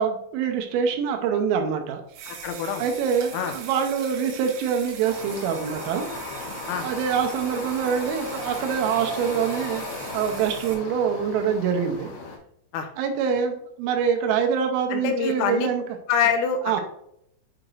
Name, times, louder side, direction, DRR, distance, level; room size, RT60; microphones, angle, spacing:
voice 1, 0.0-2.4 2.8-6.1 6.8-9.9 10.1-12.1 13.0-15.8 16.7-16.8, right 7 dB, 85° right, 4 dB, 3.3 m, -25 dB
sound 1, 2.1-10.8, right 5 dB, 70° right, 3.3 m, -40 dB
voice 2, 2.3-2.9 3.3-3.5 6.7-6.9 12.7-12.9 14.9-15.7 16.1-16.8, left 7 dB, 85° left, 5 dB, 3.4 m, -25 dB
sound 2, 5.0-12.4, left 3 dB, 70° left, 2.5 m, -36 dB
8.7 x 4.9 x 2.6 m, 0.73 s
omnidirectional pair, 5.9 m